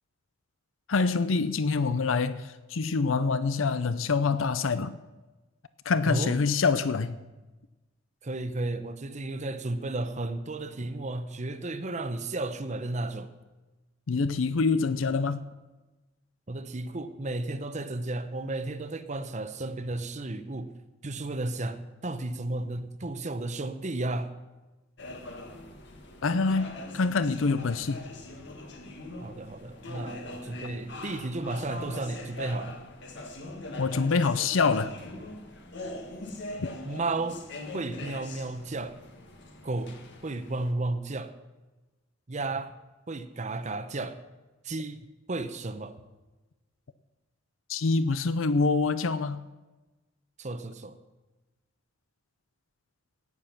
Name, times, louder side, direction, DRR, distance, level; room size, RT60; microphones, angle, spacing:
voice 1, 0.9-5.0 5.9-7.2 14.1-15.4 26.2-28.0 33.8-34.9 36.6-36.7 47.7-49.4, left 4 dB, 80° left, 14 dB, 0.6 m, -26 dB
voice 2, 6.0-6.3 8.2-13.3 16.5-20.7 21.0-24.3 29.2-32.7 36.8-37.4 37.7-39.0 39.6-39.9 40.2-41.3 42.3-42.7 43.1-44.2 44.6-46.0 50.4-51.0, right 2 dB, 35° right, 10 dB, 0.9 m, -33 dB
sound 1, 25.0-40.7, left 2 dB, 60° left, 1.7 m, -42 dB
15.5 x 9.8 x 5.9 m, 1.1 s
head